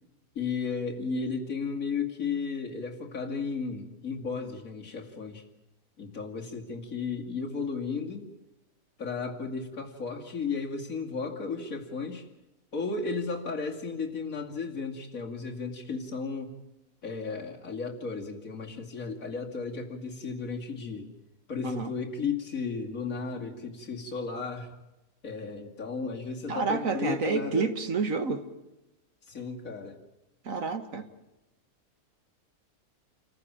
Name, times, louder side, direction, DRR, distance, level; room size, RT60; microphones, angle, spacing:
voice 1, 0.3-5.4 6.0-8.3 9.0-12.3 12.7-16.6 17.0-21.1 21.5-24.7 25.2-27.7 29.3-30.0, left 4 dB, 60° left, 1 dB, 2.9 m, -34 dB
voice 2, 26.5-28.5 30.5-31.1, right 4 dB, 60° right, 9 dB, 1.8 m, -29 dB
28.0 x 14.5 x 8.7 m, 1.0 s
omnidirectional pair, 1.6 m